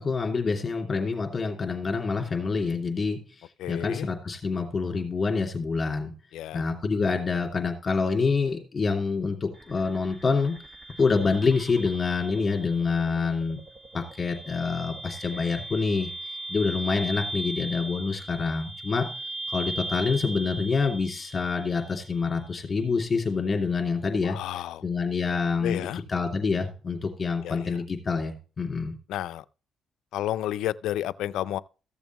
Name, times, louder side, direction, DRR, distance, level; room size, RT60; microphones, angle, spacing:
voice 1, 0.0-3.2 3.7-6.1 6.5-10.5 11.0-13.6 13.9-19.1 19.5-28.9, left 4 dB, 35° left, 2.7 m, -27 dB
voice 2, 3.6-4.1 6.3-6.6 24.2-24.8 25.6-26.0 27.4-27.7 29.1-29.4 30.1-31.6, left 13 dB, 85° left, 0.4 m, -31 dB
sound 1, 9.5-22.5, right 2 dB, 20° right, 1.3 m, -39 dB
14.5 x 7.1 x 3.0 m
cardioid pair, 90°, 0 cm